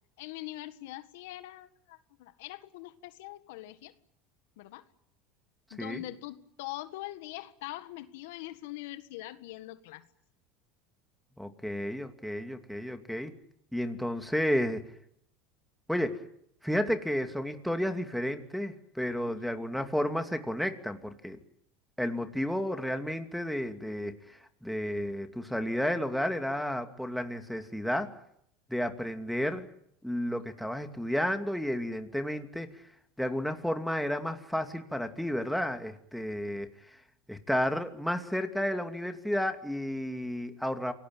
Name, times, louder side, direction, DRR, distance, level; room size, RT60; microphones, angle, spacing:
voice 1, 0.2-3.9 4.6-4.8 5.7-10.1 19.3-19.5, left 16 dB, 75° left, 12 dB, 1.6 m, -43 dB
voice 2, 11.4-13.3 13.7-14.8 15.9-16.2 16.6-21.4 22.0-28.1 28.7-29.7 30.0-32.8 33.2-37.0 37.3-40.9, equal, ahead, 6 dB, 2.5 m, -32 dB
27.5 x 18.5 x 9.0 m, 0.73 s
supercardioid pair, 105°, 0 cm